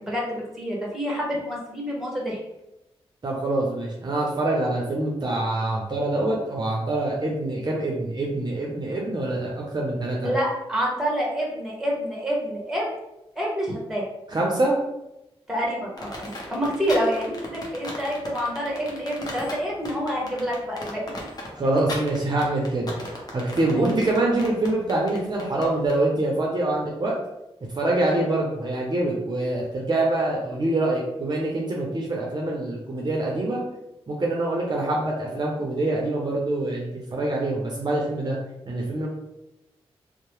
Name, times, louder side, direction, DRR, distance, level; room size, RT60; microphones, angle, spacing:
voice 1, 0.0-2.4 10.2-12.8 13.4-14.0 15.5-21.3 23.6-23.9, equal, 5° right, -3 dB, 1.1 m, -27 dB
voice 2, 3.2-10.3 14.3-14.7 21.6-27.1 27.7-33.6 34.1-38.4 38.7-39.1, right 2 dB, 40° right, -2 dB, 0.6 m, -25 dB
sound 1, 16.0-26.0, left 1 dB, 40° left, 0.8 m, -37 dB
2.8 x 2.0 x 3.0 m, 0.91 s
cardioid pair, 60°, 11 cm